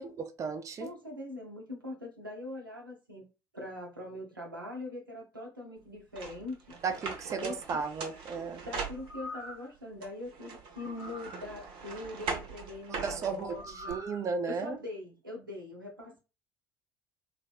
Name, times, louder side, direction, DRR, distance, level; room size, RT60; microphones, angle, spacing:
voice 1, 0.2-0.9 6.8-8.6 12.9-14.8, right 5 dB, 30° right, 0.4 m, -35 dB
voice 2, 0.8-3.2 3.5-6.7 7.4-7.8 8.7-14.0 14.5-16.2, left 2 dB, 90° right, 0.7 m, -42 dB
sound 1, 6.2-9.5 10.0-13.9, right 4 dB, 55° right, 0.8 m, -41 dB
sound 2, 8.9-9.7 10.8-11.4 13.5-14.2 14.7-14.8, left 1 dB, 70° left, 1.0 m, -44 dB
3.2 x 2.1 x 2.3 m
figure-of-eight pair, 60°, 11 cm